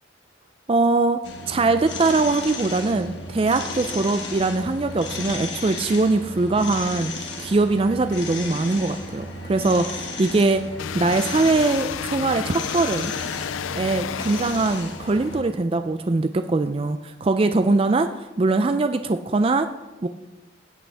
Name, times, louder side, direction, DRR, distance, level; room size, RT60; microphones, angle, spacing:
voice 1, 0.7-1.2 1.5-7.1 7.4-10.6 10.9-13.1 13.8-19.7 20.0-20.1, right 3 dB, 30° right, 9 dB, 0.3 m, -22 dB
sound 1, 1.2-15.4, left 2 dB, 65° left, 1.7 m, -34 dB
sound 2, 10.8-15.3, left 9 dB, 80° left, 0.4 m, -32 dB
16.0 x 8.7 x 3.4 m, 1.1 s
head